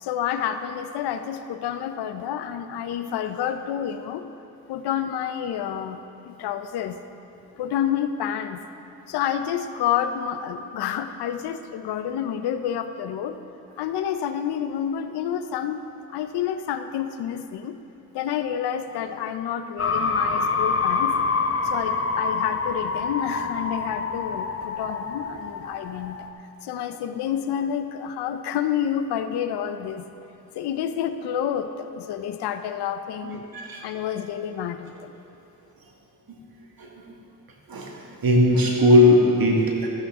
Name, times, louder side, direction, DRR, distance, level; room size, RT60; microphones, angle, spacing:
voice 1, 0.0-4.2 4.7-7.0 7.6-8.6 9.1-13.4 13.8-15.8 16.1-17.8 18.1-21.2 21.6-26.2 26.6-30.1 30.6-33.4 33.8-35.1, left 9 dB, 90° left, 9 dB, 0.6 m, -29 dB
sound 1, 19.8-26.3, left 4 dB, 35° left, 0.9 m, -26 dB
voice 2, 33.2-33.8 36.8-37.1 37.7-37.9 38.2-39.9, left 1 dB, 65° right, 0 dB, 1.8 m, -19 dB
12.5 x 8.8 x 3.6 m, 2.7 s
supercardioid pair, 45°, 38 cm